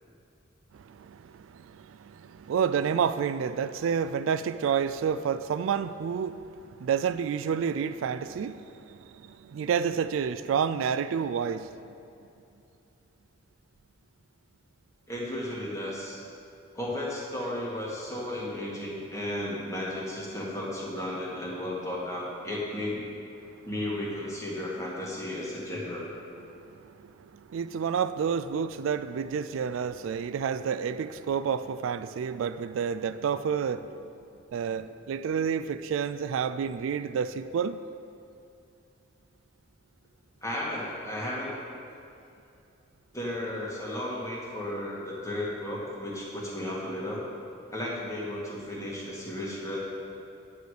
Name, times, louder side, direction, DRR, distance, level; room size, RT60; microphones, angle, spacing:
voice 1, 0.7-11.9 23.4-23.7 26.5-34.1 34.5-37.8, right 7 dB, 80° right, 13 dB, 0.3 m, -30 dB
voice 2, 15.1-16.2 16.7-23.0 23.6-26.0 40.4-41.5 43.1-47.2 47.7-49.8, left 1 dB, 15° left, -5 dB, 1.7 m, -34 dB
9.3 x 8.2 x 4.8 m, 2.6 s
head